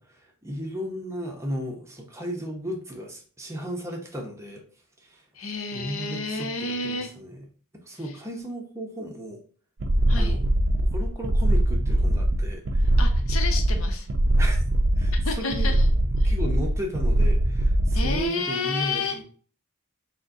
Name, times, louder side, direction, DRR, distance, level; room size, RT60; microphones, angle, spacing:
voice 1, 0.0-4.6 5.0-5.2 5.7-7.5 7.8-9.4 10.1-10.4 10.9-12.9 14.4-14.6 15.0-15.7 16.2-19.2, equal, 15° right, 1 dB, 0.7 m, -35 dB
voice 2, 5.3-7.1 8.0-8.1 10.1-10.4 13.0-14.1 15.2-15.8 16.2-16.3 17.9-19.2, left 4 dB, 70° left, 5 dB, 0.7 m, -30 dB
sound 1, 9.8-18.2, right 1 dB, 50° right, 0.5 m, -22 dB
6.3 x 2.2 x 2.6 m, 0.43 s
head